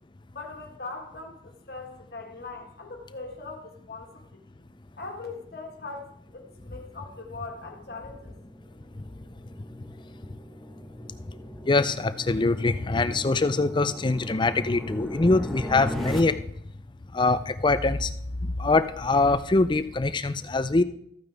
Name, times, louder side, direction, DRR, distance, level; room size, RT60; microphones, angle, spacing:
voice 1, 0.3-4.4 5.0-8.3, left 3 dB, 60° left, 1 dB, 1.6 m, -40 dB
sound 1, 5.1-16.2, equal, ahead, 1.3 m, -39 dB
voice 2, 11.6-16.4 17.1-18.1 18.4-20.8, left 3 dB, 25° left, 12 dB, 0.5 m, -23 dB
14.0 x 9.1 x 3.5 m, 0.72 s
head